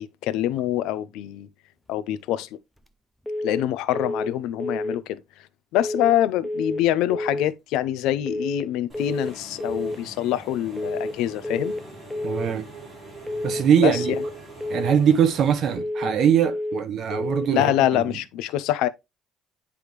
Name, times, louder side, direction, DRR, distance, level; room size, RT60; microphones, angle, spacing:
voice 1, 0.0-1.5 1.9-2.5 3.4-5.2 5.7-11.7 13.8-14.2 17.5-18.9, left 12 dB, 70° left, 0.5 m, -25 dB
sound 1, 3.3-3.7 3.9-4.3 4.6-5.0 5.8-6.2 6.4-6.8 7.1-7.5 8.3-8.7 8.9-9.3 9.6-10.0 10.8-11.2 11.4-11.8 12.1-12.5 13.3-13.7 13.9-14.3 14.6-15.0 15.8-16.2 16.4-16.8 17.1-17.5, left 1 dB, ahead, 0.5 m, -29 dB
Engine / Mechanisms, 8.9-15.8, right 1 dB, 15° right, 2.8 m, -43 dB
voice 2, 12.2-12.7 13.4-14.1 14.7-18.0, right 8 dB, 40° right, 0.9 m, -21 dB
9.9 x 3.5 x 3.0 m
cardioid pair, 175°, 0 cm